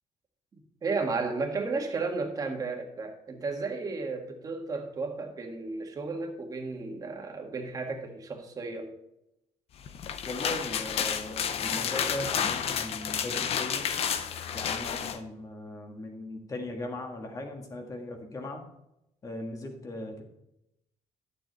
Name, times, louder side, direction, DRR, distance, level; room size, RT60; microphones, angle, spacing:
voice 1, 0.8-8.9, right 3 dB, 30° right, 3 dB, 1.7 m, -33 dB
sound 1, 9.9-15.2, left 8 dB, 50° left, 0.8 m, -31 dB
voice 2, 10.3-13.9 14.5-18.7 19.2-20.2, left 1 dB, 25° left, 3 dB, 1.7 m, -38 dB
11.5 x 7.6 x 4.1 m, 0.85 s
cardioid pair, 160°, 13 cm